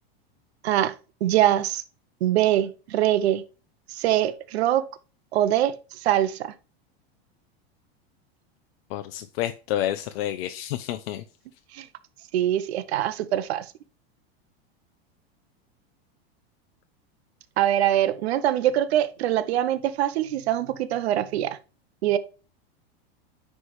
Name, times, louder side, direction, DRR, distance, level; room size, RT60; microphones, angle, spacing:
voice 1, 0.6-0.9 1.2-1.8 2.2-3.4 3.9-4.9 5.3-5.8 6.0-6.5 11.7-11.9 12.3-13.7 17.6-21.6 22.0-22.2, right 12 dB, 85° right, 0.7 m, -23 dB
voice 2, 8.9-11.2, left 12 dB, 70° left, 0.6 m, -29 dB
9.6 x 3.3 x 3.1 m
supercardioid pair, 140°, 31 cm